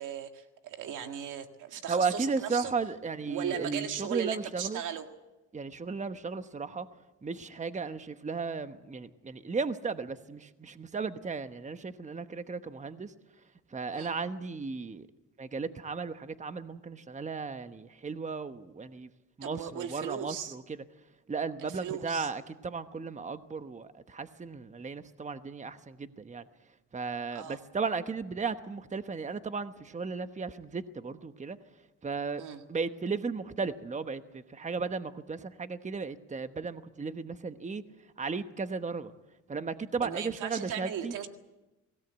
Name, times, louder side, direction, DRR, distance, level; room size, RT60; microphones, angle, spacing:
voice 1, 0.0-2.7 3.3-5.1 13.9-14.2 19.4-20.5 21.8-22.3 27.3-27.6 32.4-32.6 40.0-41.3, right 9 dB, 85° right, 6 dB, 1.9 m, -37 dB
voice 2, 1.9-4.8 5.5-6.9 7.2-13.1 13.7-15.1 15.4-19.1 19.4-20.8 21.3-26.5 26.9-31.6 32.0-32.4 32.7-37.8 38.2-39.1 39.5-41.1, right 4 dB, 25° right, 10 dB, 1.1 m, -35 dB
23.5 x 17.5 x 8.2 m, 1.0 s
cardioid pair, 90°, 30 cm